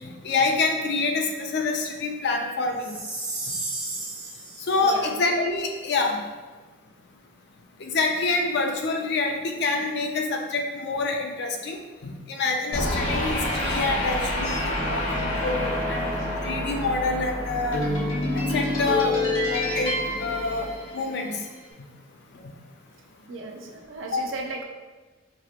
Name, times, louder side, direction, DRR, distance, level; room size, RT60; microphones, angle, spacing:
voice 1, 0.2-2.9 4.7-6.2 7.8-16.0 16.4-17.8 18.5-19.2 19.5-20.7 20.9-21.4 24.1-24.2, left 3 dB, 60° left, 3 dB, 0.5 m, -26 dB
Chime, 2.8-4.8, right 2 dB, 40° right, 1.1 m, -33 dB
voice 2, 4.8-5.2 23.3-24.6, right 3 dB, 70° right, 2 dB, 0.5 m, -36 dB
sound 1, 12.7-21.3, left 1 dB, 90° left, 1.0 m, -27 dB
4.6 x 2.9 x 2.4 m, 1.3 s
head